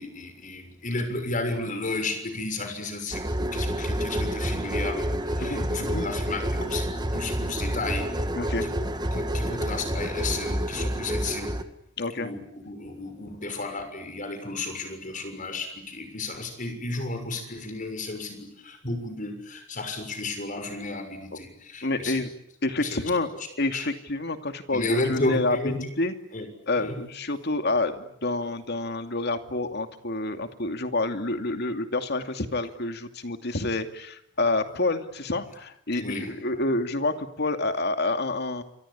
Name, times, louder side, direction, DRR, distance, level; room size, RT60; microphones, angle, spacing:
voice 1, 0.0-8.1 8.6-8.7 9.1-11.6 12.2-22.2 22.8-23.0 23.7-23.9 24.7-25.8 26.3-26.5 26.8-27.0 35.9-36.3, left 2 dB, 40° left, 7 dB, 6.6 m, -33 dB
sound 1, 3.1-11.6, equal, 20° right, 1.9 m, -29 dB
voice 2, 5.4-6.1 8.3-8.7 12.0-12.3 21.8-22.3 22.6-23.3 23.6-26.1 26.7-38.6, left 2 dB, 60° left, 7 dB, 2.5 m, -28 dB
28.0 x 24.0 x 8.6 m, 0.76 s
head